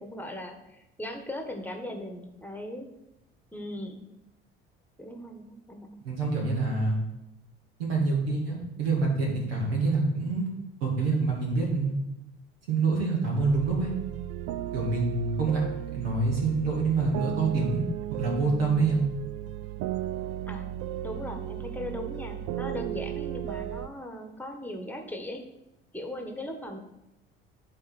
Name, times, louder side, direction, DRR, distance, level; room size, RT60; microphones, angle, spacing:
voice 1, 0.0-2.9 3.5-4.0 5.0-6.0 20.5-20.7 21.0-25.4 25.9-26.8, left 1 dB, 5° left, 3 dB, 1.2 m, -38 dB
voice 2, 6.0-7.0 7.8-10.5 10.8-12.0 12.7-13.9 14.7-15.6 15.9-17.8 18.2-19.0, right 3 dB, 80° right, -1 dB, 2.0 m, -26 dB
sound 1, 13.4-23.9, right 12 dB, 65° right, 0.4 m, -35 dB
10.5 x 3.7 x 4.2 m, 0.90 s
hypercardioid pair, 60°, 29 cm